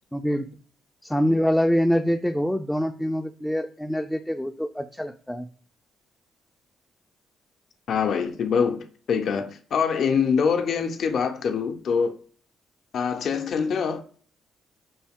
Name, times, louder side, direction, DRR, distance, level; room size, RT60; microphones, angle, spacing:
voice 1, 0.1-0.5 1.0-5.5, equal, 5° left, 0.3 m, -25 dB
voice 2, 7.9-12.2 12.9-14.0, left 6 dB, 60° left, 0.6 m, -24 dB
5.3 x 2.3 x 3.5 m
cardioid pair, 90°, 0 cm